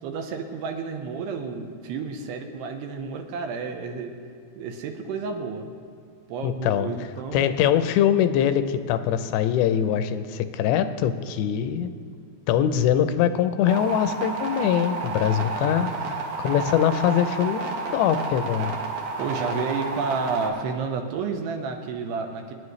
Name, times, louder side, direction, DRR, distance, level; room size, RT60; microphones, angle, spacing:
voice 1, 0.0-4.1 4.6-5.8 6.3-7.5 15.3-16.3 19.2-22.5, right 5 dB, 80° right, 4 dB, 2.9 m, -31 dB
voice 2, 6.4-6.9 7.3-11.9 12.5-15.9 16.4-17.6 17.9-18.7, left 9 dB, 85° left, 10 dB, 2.8 m, -22 dB
sound 1, 13.7-20.5, right 4 dB, 60° right, 2.5 m, -31 dB
27.0 x 10.5 x 3.2 m, 2.2 s
omnidirectional pair, 5.0 m